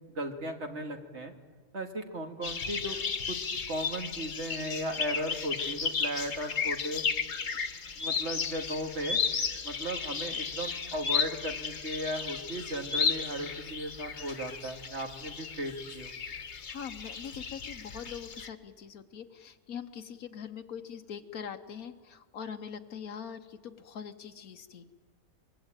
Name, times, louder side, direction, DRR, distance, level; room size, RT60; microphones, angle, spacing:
voice 1, 0.1-1.3 1.7-3.0 3.3-7.0 8.0-9.2 9.6-16.1, right 1 dB, 50° right, 4 dB, 2.3 m, -36 dB
sound 1, 2.4-18.5, left 6 dB, 50° left, 1.4 m, -34 dB
voice 2, 16.7-24.9, left 7 dB, 85° left, 6 dB, 1.4 m, -42 dB
24.5 x 22.5 x 9.0 m, 1.5 s
omnidirectional pair, 1.5 m